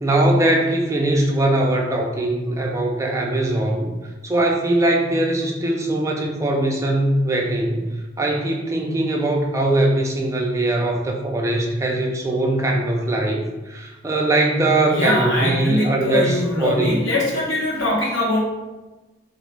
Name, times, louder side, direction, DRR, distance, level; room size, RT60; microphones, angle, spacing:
voice 1, 0.0-3.9 4.2-7.9 8.2-16.9, right 1 dB, 15° right, -1 dB, 0.3 m, -21 dB
voice 2, 14.9-18.4, left 1 dB, 75° left, -4 dB, 0.8 m, -22 dB
2.5 x 2.3 x 3.1 m, 1.1 s
head